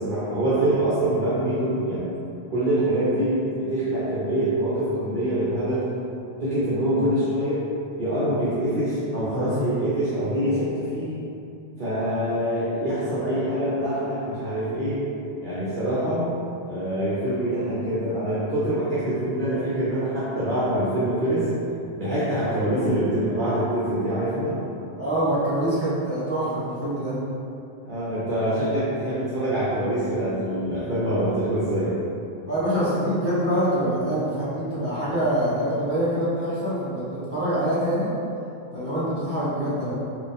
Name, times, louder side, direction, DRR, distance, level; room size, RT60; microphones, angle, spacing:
voice 1, 0.0-2.1 2.5-5.9 6.4-7.7 8.0-11.3 11.8-15.1 15.4-16.3 16.7-21.5 22.0-24.6 27.9-31.9, right 1 dB, 50° right, -10 dB, 0.9 m, -25 dB
voice 2, 25.0-27.1 32.5-38.1 38.7-39.9, right 1 dB, 10° right, -12 dB, 1.5 m, -25 dB
4.3 x 2.4 x 3.4 m, 2.7 s
omnidirectional pair, 1.1 m